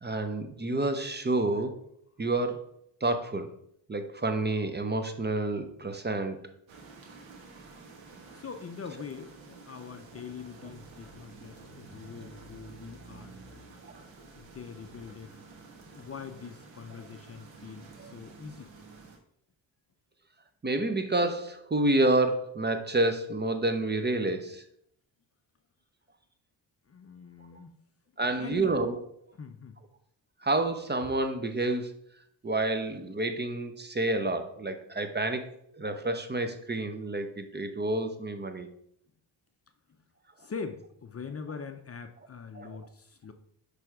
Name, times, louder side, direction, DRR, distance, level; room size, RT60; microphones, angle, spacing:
voice 1, 0.0-1.8 2.2-2.6 3.0-3.5 3.9-6.4 13.9-14.0 18.0-18.1 20.6-24.6 28.2-28.9 30.4-31.9 32.4-35.5 35.8-38.7 42.5-42.8, right 2 dB, 20° right, 8 dB, 0.8 m, -29 dB
sound 1, 6.7-19.2, right 3 dB, 80° right, 1.3 m, -50 dB
voice 2, 8.3-13.4 14.3-15.3 15.8-18.7 26.9-27.7 28.2-28.7 29.3-29.8 40.4-43.3, left 5 dB, 30° left, 7 dB, 0.6 m, -43 dB
6.0 x 3.5 x 4.9 m, 0.70 s
supercardioid pair, 60°, 46 cm